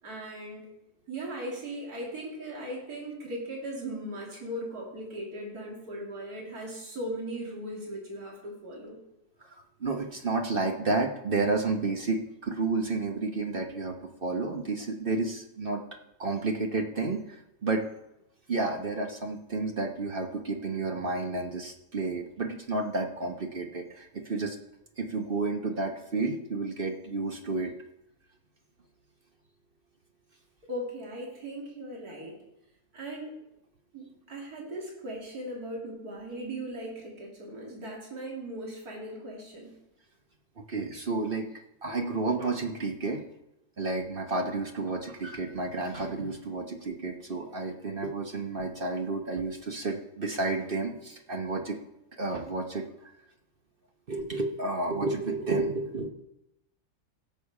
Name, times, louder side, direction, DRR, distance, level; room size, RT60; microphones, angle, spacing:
voice 1, 0.0-0.7 1.1-9.0 30.7-32.3 32.9-33.3 33.9-39.8, right 1 dB, 70° right, -3 dB, 3.1 m, -38 dB
voice 2, 9.4-15.8 16.2-17.8 18.5-24.6 25.0-27.7 40.6-41.5 41.8-43.2 43.8-51.8 52.2-53.1 54.1-56.1, right 3 dB, 40° right, 3 dB, 1.0 m, -31 dB
16.5 x 6.8 x 4.8 m, 0.86 s
omnidirectional pair, 1.7 m